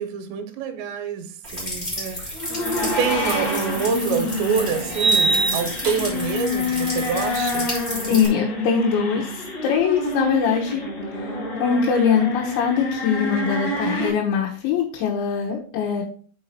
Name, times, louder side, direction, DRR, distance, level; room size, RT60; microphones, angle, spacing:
voice 1, 0.0-2.3 2.8-7.7, right 6 dB, 85° right, 3.2 m, -27 dB
sound 1, 1.4-8.3, equal, 15° left, 2.4 m, -32 dB
sound 2, 2.3-14.1, left 2 dB, 60° left, 1.2 m, -27 dB
sound 3, 4.9-6.3, right 4 dB, 55° right, 2.6 m, -22 dB
voice 2, 8.1-9.3 9.6-10.8 11.1-16.0, left 6 dB, 85° left, 3.4 m, -22 dB
6.2 x 5.6 x 4.2 m
omnidirectional pair, 5.2 m